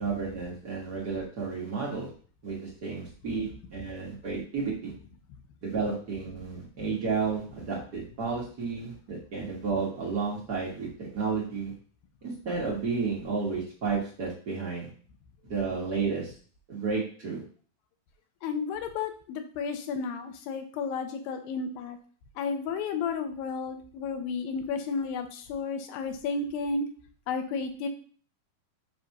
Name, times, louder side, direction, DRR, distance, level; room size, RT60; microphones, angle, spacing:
voice 1, 0.0-2.1 2.4-4.9 5.6-11.7 12.2-14.9 15.5-16.3 16.7-17.4, right 5 dB, 85° right, -4 dB, 0.8 m, -32 dB
voice 2, 18.4-22.0 22.4-26.9 27.3-27.9, left 5 dB, 80° left, 6 dB, 2.6 m, -32 dB
7.8 x 2.7 x 5.7 m, 0.44 s
omnidirectional pair, 4.2 m